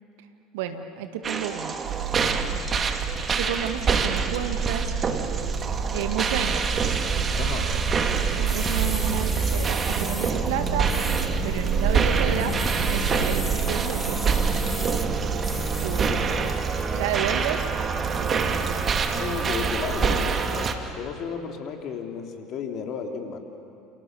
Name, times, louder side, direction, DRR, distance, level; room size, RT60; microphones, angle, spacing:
voice 1, 0.5-1.8 3.3-4.9 5.9-6.7 8.4-11.0 11.4-12.6 12.9-14.4 15.8-16.1 16.9-17.7 18.2-18.7, right 10 dB, 70° right, 7 dB, 1.9 m, -31 dB
sound 1, 1.2-20.7, right 5 dB, 35° right, 2.3 m, -27 dB
sound 2, 1.8-20.1, right 5 dB, 50° right, 4.3 m, -30 dB
sound 3, 8.4-16.3, left 1 dB, 5° left, 1.8 m, -39 dB
voice 2, 19.2-23.4, left 6 dB, 50° left, 3 dB, 3.5 m, -33 dB
30.0 x 28.5 x 7.0 m, 2.7 s
figure-of-eight pair, 65°, 0 cm